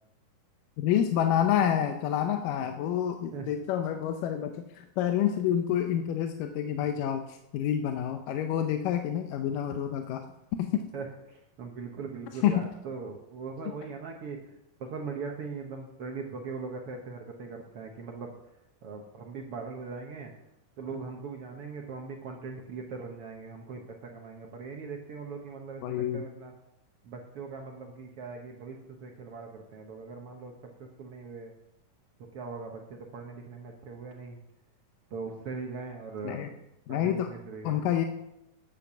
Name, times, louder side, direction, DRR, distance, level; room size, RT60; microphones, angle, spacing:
voice 1, 0.8-10.2 10.6-10.8 12.4-12.5 25.8-26.2 36.2-36.5 36.9-37.3 37.6-38.1, left 10 dB, 75° left, 6 dB, 2.2 m, -28 dB
voice 2, 10.9-14.5 14.8-18.4 18.8-20.3 20.8-26.5 27.0-30.5 30.8-31.5 32.3-34.4 35.1-36.6 36.9-37.9, right 4 dB, 75° right, 1 dB, 1.3 m, -40 dB
11.0 x 8.6 x 6.0 m, 0.87 s
omnidirectional pair, 4.1 m